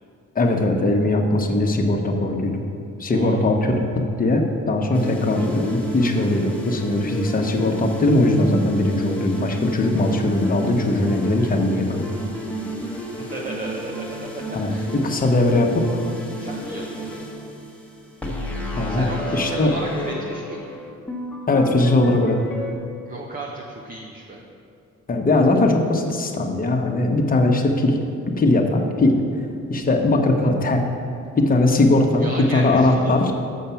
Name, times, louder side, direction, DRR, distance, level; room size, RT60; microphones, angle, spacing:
voice 1, 0.3-2.6 3.0-12.1 14.5-16.0 18.7-19.7 21.5-22.4 25.1-28.0 28.4-29.2 29.7-30.8 31.4-33.3, left 2 dB, 30° left, 2 dB, 1.1 m, -20 dB
voice 2, 3.1-3.4 13.2-14.4 14.7-14.9 16.4-17.2 18.9-20.6 23.1-24.4 32.2-33.2, right 2 dB, 30° right, -1 dB, 0.9 m, -34 dB
sound 1, 4.9-22.7, equal, 5° left, 1.3 m, -32 dB
6.4 x 5.7 x 7.0 m, 2.4 s
cardioid pair, 90°, 30 cm